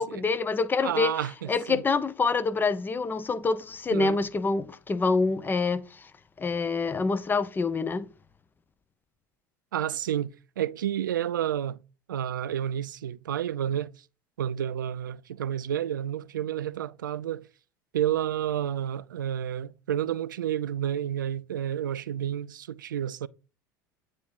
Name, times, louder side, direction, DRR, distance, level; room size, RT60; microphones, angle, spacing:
voice 1, 0.0-1.1 1.5-6.0 6.4-8.1, left 4 dB, 20° left, 0.7 m, -26 dB
voice 2, 0.8-1.8 3.9-4.2 9.7-11.8 12.1-13.9 14.4-17.5 17.9-23.3, right 10 dB, 80° right, 0.4 m, -30 dB
8.7 x 3.5 x 4.2 m
hypercardioid pair, 75°, 10 cm